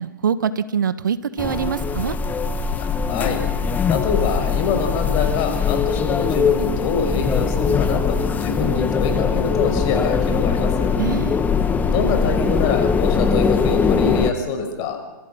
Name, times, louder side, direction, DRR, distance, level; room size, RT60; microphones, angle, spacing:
voice 1, 0.0-2.1 10.9-11.4, right 7 dB, 70° right, 14 dB, 1.4 m, -24 dB
sound 1, 1.4-14.3, left 5 dB, 15° left, 1.5 m, -21 dB
voice 2, 2.8-3.4 3.9-10.9 11.8-15.0, left 5 dB, 40° left, 6 dB, 5.8 m, -25 dB
27.5 x 25.5 x 5.9 m, 1.2 s
hypercardioid pair, 115°, 11 cm